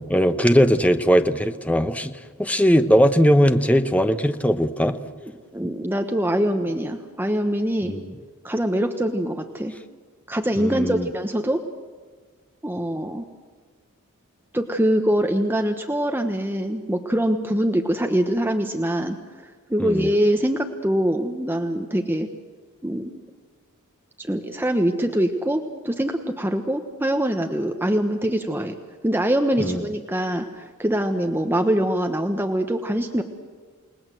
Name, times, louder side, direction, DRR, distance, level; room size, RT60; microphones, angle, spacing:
voice 1, 0.0-2.1 2.4-5.0 7.8-8.2 10.6-11.1 19.8-20.1 29.6-29.8, equal, 5° left, 9 dB, 1.0 m, -19 dB
voice 2, 5.2-7.9 8.4-9.7 10.3-11.6 12.6-13.2 14.5-19.2 19.7-22.3 22.8-23.2 24.2-28.7 29.0-33.2, right 1 dB, 10° right, 5 dB, 1.1 m, -23 dB
29.5 x 19.5 x 7.8 m, 1.5 s
head